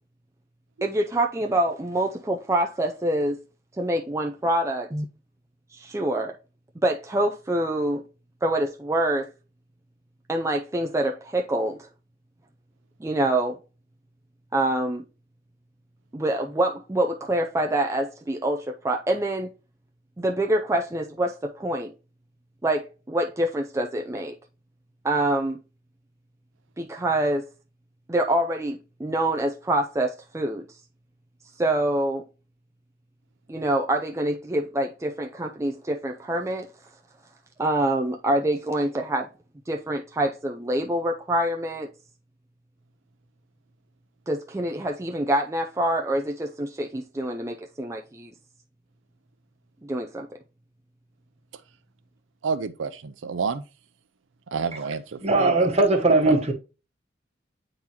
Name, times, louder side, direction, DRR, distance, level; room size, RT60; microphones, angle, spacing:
voice 1, 0.8-3.4 3.8-5.1 5.7-6.3 6.8-8.0 8.4-9.3 10.3-11.8 13.0-13.6 14.5-15.0 16.1-19.5 20.2-21.9 22.6-24.3 25.0-25.6 26.8-27.5 28.1-30.6 31.6-32.2 33.5-36.7 37.6-39.3 39.7-41.9 44.3-48.3 49.8-50.3, right 1 dB, 15° right, 0.4 m, -26 dB
voice 2, 52.4-53.6 54.5-55.7, right 5 dB, 85° right, 0.5 m, -29 dB
voice 3, 55.2-56.5, right 2 dB, 35° right, 1.3 m, -19 dB
8.7 x 3.9 x 2.9 m
head